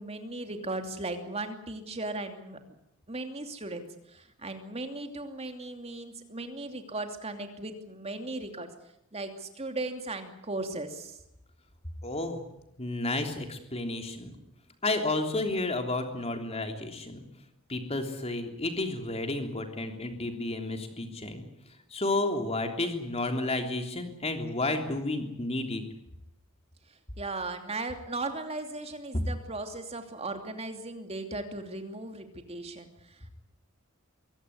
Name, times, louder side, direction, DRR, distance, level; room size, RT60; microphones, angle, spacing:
voice 1, 0.0-2.6 3.1-8.7 9.1-11.2 27.2-33.3, right 2 dB, 30° right, 6 dB, 2.8 m, -37 dB
voice 2, 12.0-12.4 12.8-14.3 14.8-17.2 17.7-21.4 21.9-25.8, left 2 dB, 30° left, 5 dB, 3.3 m, -31 dB
24.0 x 17.0 x 9.6 m, 0.81 s
head